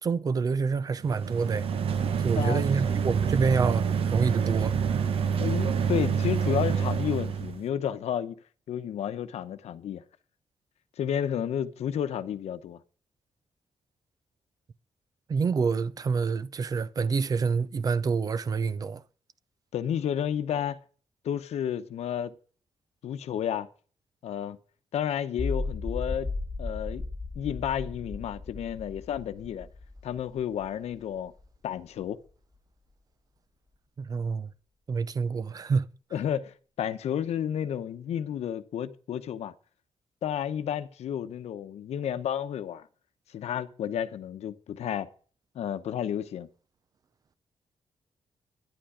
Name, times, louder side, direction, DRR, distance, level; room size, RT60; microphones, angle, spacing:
voice 1, 0.0-1.7 2.2-4.7 15.3-19.0 34.0-34.5 34.9-35.9, right 5 dB, 35° right, 0.6 m, -27 dB
sound 1, 1.0-7.6, right 7 dB, 60° right, 1.0 m, -27 dB
voice 2, 2.4-3.0 5.4-8.4 8.7-10.0 11.0-12.8 19.7-20.8 21.2-22.3 23.0-23.7 24.2-24.6 24.9-26.3 26.6-27.0 27.3-29.7 30.0-31.3 31.6-32.2 36.1-39.5 40.2-42.9 43.3-45.1 45.5-46.5, left 9 dB, 85° left, 0.9 m, -31 dB
sound 2, 25.4-31.5, left 3 dB, 5° left, 1.8 m, -36 dB
11.5 x 10.5 x 5.0 m
wide cardioid pair, 175°, 11 cm